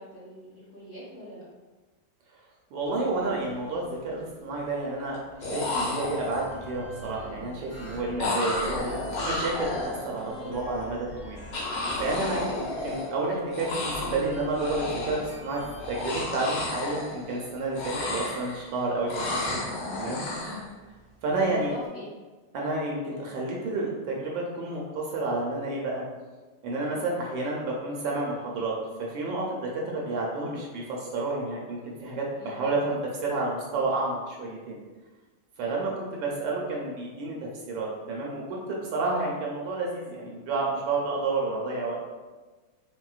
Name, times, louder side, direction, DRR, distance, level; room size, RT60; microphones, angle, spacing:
voice 1, 0.0-1.4 10.4-10.5 12.2-12.5 19.9-20.8 21.4-22.1 26.9-27.0 32.4-32.8 35.6-35.8, right 1 dB, 45° left, -10 dB, 1.5 m, -42 dB
voice 2, 2.7-19.6 20.0-20.2 21.2-21.7 22.5-26.0 26.6-28.7 29.0-34.8 35.6-37.4 37.7-42.0, right 2 dB, 75° right, -2 dB, 1.2 m, -30 dB
sound 1, 3.0-3.2 3.5-4.1 5.1-5.2 5.4-6.6 8.2-10.4 11.5-13.3 13.5-14.3 14.5-15.4 15.8-17.4 17.7-18.7 19.1-20.6, left 2 dB, 85° left, 1.6 m, -32 dB
sound 2, 5.3-16.1, equal, 70° left, 1.8 m, -42 dB
4.3 x 2.1 x 2.3 m, 1.3 s
omnidirectional pair, 2.2 m